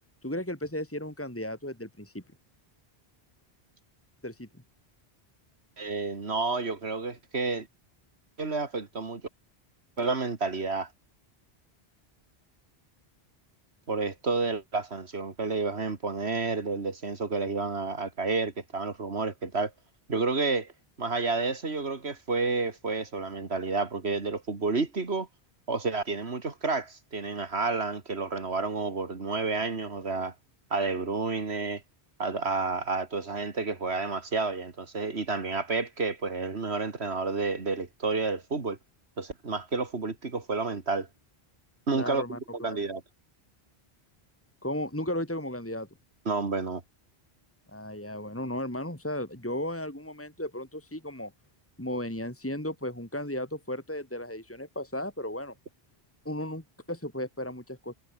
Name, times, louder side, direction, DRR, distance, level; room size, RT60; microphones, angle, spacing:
voice 1, 0.2-2.2 4.2-4.5 41.9-42.4 42.7-42.8 44.6-45.9 47.7-51.3 51.8-55.5 56.2-57.9, left 1 dB, 10° left, 3.1 m, -35 dB
voice 2, 5.8-7.7 8.4-9.2 10.0-10.9 13.9-19.7 20.1-20.7 21.0-25.3 25.7-30.3 30.7-31.8 32.2-38.8 39.2-41.1 41.9-43.0 46.3-46.8, right 3 dB, 75° right, 2.8 m, -30 dB
omnidirectional pair, 1.1 m